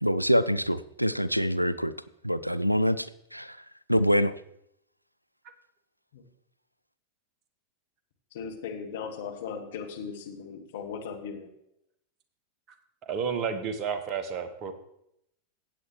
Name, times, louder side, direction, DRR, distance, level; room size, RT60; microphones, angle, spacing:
voice 1, 0.0-1.9 2.2-3.6 3.9-4.3, equal, 90° right, 17 dB, 0.3 m, -25 dB
voice 2, 8.3-11.5, left 6 dB, 55° left, 3 dB, 1.6 m, -37 dB
voice 3, 13.0-14.7, right 6 dB, 35° right, 8 dB, 1.2 m, -31 dB
15.5 x 8.4 x 3.1 m, 0.77 s
figure-of-eight pair, 90°, 0 cm